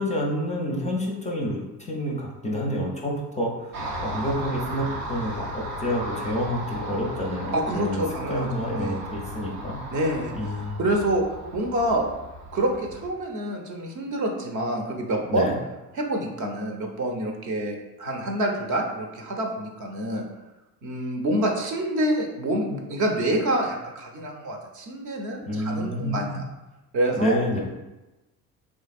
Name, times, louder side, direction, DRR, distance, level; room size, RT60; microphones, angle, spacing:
voice 1, 0.0-8.0 8.3-9.8 10.3-10.8 15.3-15.6 25.4-26.4 27.2-27.6, equal, 15° left, -2 dB, 0.5 m, -28 dB
Car passing by, 3.7-13.1, right 1 dB, 80° right, 0.7 m, -36 dB
voice 2, 7.5-9.0 9.9-10.3 10.8-11.2 11.5-12.1 12.5-15.5 15.9-20.2 20.8-26.4 26.9-27.6, right 1 dB, 45° right, 2 dB, 0.7 m, -27 dB
3.7 x 3.1 x 2.4 m, 1.0 s
figure-of-eight pair, 55°, 44 cm